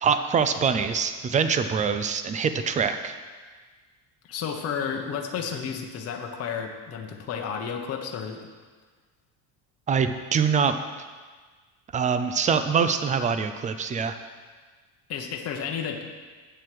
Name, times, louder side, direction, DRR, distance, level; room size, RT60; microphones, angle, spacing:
voice 1, 0.0-3.1 9.9-10.8 11.9-14.2, right 6 dB, 20° right, 10 dB, 0.3 m, -24 dB
voice 2, 4.2-8.5 15.1-16.0, left 7 dB, 35° left, 2 dB, 0.9 m, -32 dB
8.8 x 7.8 x 6.1 m, 1.5 s
cardioid pair, 160°, 44 cm